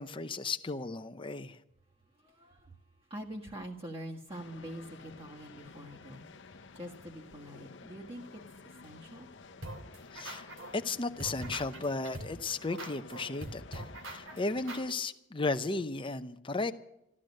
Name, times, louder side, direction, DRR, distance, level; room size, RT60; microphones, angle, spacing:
voice 1, 0.0-1.6 10.1-10.5 10.7-16.7, left 3 dB, 25° left, 0.7 m, -35 dB
voice 2, 2.2-9.3, right 1 dB, 30° right, 1.8 m, -45 dB
sound 1, 4.3-14.9, left 4 dB, 65° left, 0.9 m, -52 dB
sound 2, 9.6-10.9 11.2-14.9, right 1 dB, 80° right, 2.8 m, -42 dB
13.5 x 13.5 x 6.5 m
head